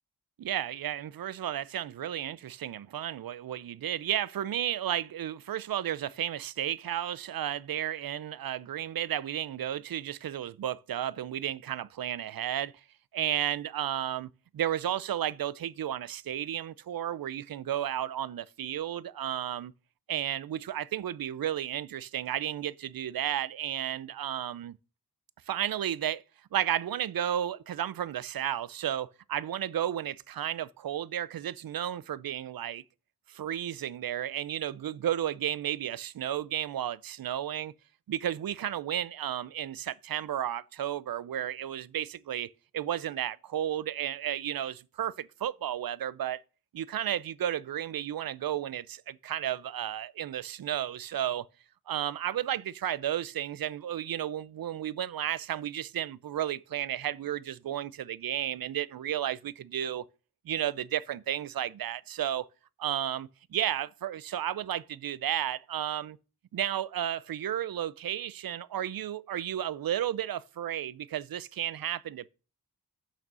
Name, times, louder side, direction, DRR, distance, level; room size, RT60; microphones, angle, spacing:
voice 1, 0.4-12.7 13.1-19.7 20.1-24.8 25.5-26.2 26.5-32.8 33.3-37.7 38.1-46.4 46.7-51.5 51.9-60.0 60.4-62.5 62.8-66.2 66.5-72.3, right 11 dB, 65° right, 0.5 m, -33 dB
6.6 x 6.1 x 6.8 m
wide cardioid pair, 100°, 38 cm